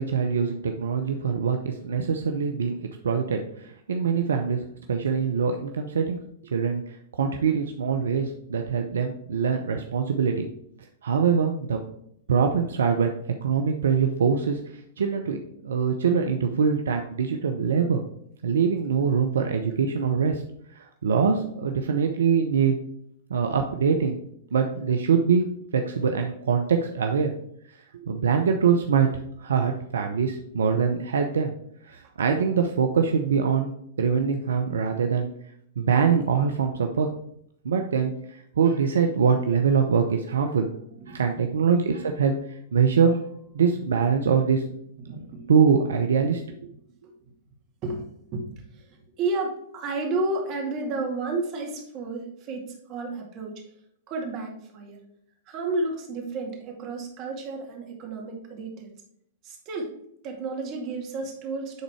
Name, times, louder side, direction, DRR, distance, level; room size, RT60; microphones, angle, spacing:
voice 1, 0.0-2.8 3.0-4.6 4.9-6.2 6.5-6.8 7.2-10.4 11.0-11.8 12.3-15.4 15.6-18.0 18.4-20.4 20.8-22.8 23.3-24.2 24.5-25.4 25.7-27.3 28.0-31.5 31.8-33.7 34.0-35.3 35.8-37.1 37.6-38.1 38.6-40.7 41.1-43.2 43.5-44.6 45.2-46.4, right 6 dB, 75° right, 4 dB, 0.7 m, -23 dB
voice 2, 41.0-41.5 45.0-45.5 47.8-48.0 48.3-53.5 54.1-55.0 55.5-58.9 59.4-59.9 60.2-61.8, right 3 dB, 40° right, 1 dB, 2.3 m, -32 dB
9.5 x 3.9 x 4.8 m, 0.72 s
hypercardioid pair, 110°, 0 cm